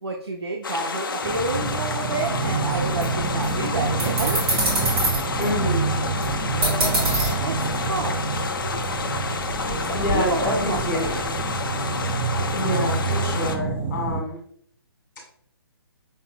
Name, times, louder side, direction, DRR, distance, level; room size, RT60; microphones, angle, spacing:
voice 1, 0.0-4.4 7.4-8.2 9.7-11.3, right 3 dB, 75° right, 1 dB, 0.6 m, -30 dB
sound 1, 0.6-13.6, left 4 dB, 55° left, 0.5 m, -29 dB
sound 2, 1.2-14.2, right 4 dB, 10° right, 0.5 m, -28 dB
sound 3, 2.7-8.6 8.8-9.0 9.4-11.5, right 1 dB, 25° right, 1.8 m, -27 dB
voice 2, 5.3-5.9 9.9-11.3 12.5-14.4, left 1 dB, 35° left, -3 dB, 1.7 m, -27 dB
5.4 x 4.1 x 2.3 m, 0.66 s
figure-of-eight pair, 135°, 14 cm